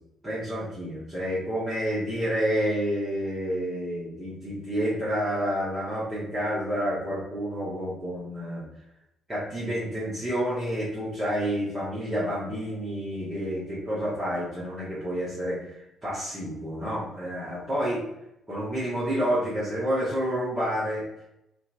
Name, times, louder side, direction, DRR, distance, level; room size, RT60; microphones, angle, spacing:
voice 1, 0.2-8.6 9.3-18.0 18.5-21.0, equal, 20° right, -9 dB, 1.2 m, -29 dB
3.5 x 2.8 x 2.5 m, 0.86 s
figure-of-eight pair, 45°, 0 cm